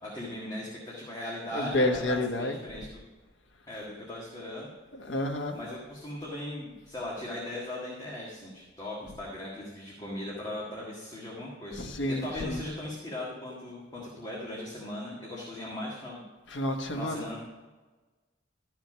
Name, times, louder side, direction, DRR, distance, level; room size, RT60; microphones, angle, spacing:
voice 1, 0.0-2.9 3.7-4.7 5.5-11.8 12.1-16.2 16.9-17.4, left 1 dB, 20° left, -5 dB, 1.6 m, -38 dB
voice 2, 1.5-2.6 4.9-5.6 11.7-12.6 16.5-17.4, left 1 dB, 85° left, 3 dB, 1.1 m, -30 dB
13.0 x 5.0 x 6.1 m, 1.3 s
head